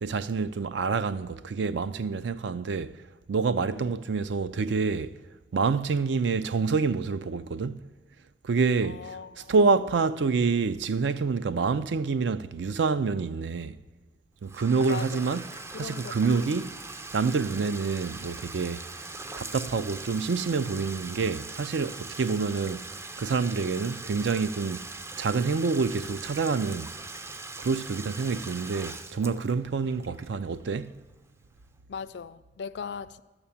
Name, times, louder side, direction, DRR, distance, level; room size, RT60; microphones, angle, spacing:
voice 1, 0.0-3.0 3.3-5.2 5.5-7.9 8.4-13.8 14.4-15.5 15.8-16.8 17.1-18.8 19.4-22.8 23.2-26.9 27.6-31.0, right 4 dB, 80° right, 0.4 m, -27 dB
voice 2, 8.8-9.5 14.9-15.3 15.7-16.1 31.9-33.2, left 6 dB, 70° left, 0.4 m, -38 dB
Bathtub (filling or washing), 14.4-31.2, right 3 dB, 15° right, 0.4 m, -41 dB
12.5 x 6.7 x 7.1 m
head